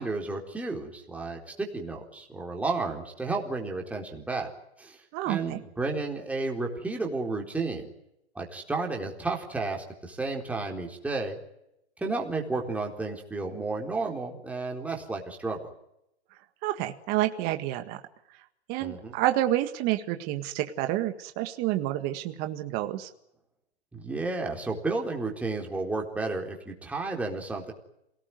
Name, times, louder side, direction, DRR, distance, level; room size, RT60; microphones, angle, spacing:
voice 1, 0.0-4.5 4.8-7.9 8.4-11.4 12.0-15.7 18.8-19.2 23.9-27.7, right 3 dB, 5° right, 1 dB, 4.0 m, -32 dB
voice 2, 5.1-5.6 16.6-18.0 18.7-23.1, right 14 dB, 30° right, 7 dB, 1.8 m, -29 dB
27.5 x 19.0 x 9.4 m, 0.82 s
hypercardioid pair, 150°, 32 cm